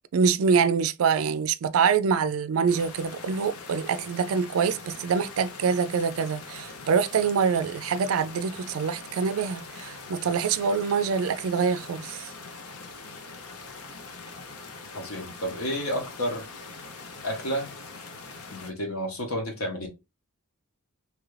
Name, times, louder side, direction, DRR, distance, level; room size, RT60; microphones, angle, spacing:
voice 1, 0.1-12.3, right 6 dB, 70° right, 0.3 m, -25 dB
sound 1, 2.7-18.7, left 3 dB, 90° left, 0.7 m, -43 dB
voice 2, 14.9-16.4 17.2-17.7 18.5-19.9, equal, 75° left, 1.1 m, -31 dB
3.0 x 2.4 x 3.2 m
head